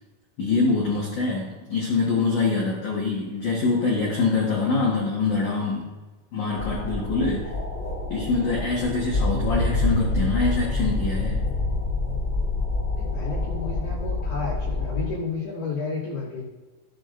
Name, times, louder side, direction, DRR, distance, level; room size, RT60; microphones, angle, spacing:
voice 1, 0.4-5.9 6.3-7.5 8.1-11.5, left 4 dB, 70° left, -4 dB, 1.8 m, -24 dB
sound 1, 6.6-15.1, left 2 dB, 25° left, 2.5 m, -27 dB
voice 2, 13.0-16.4, left 4 dB, 55° left, -7 dB, 4.3 m, -32 dB
16.5 x 7.5 x 2.6 m, 1.2 s
omnidirectional pair, 6.0 m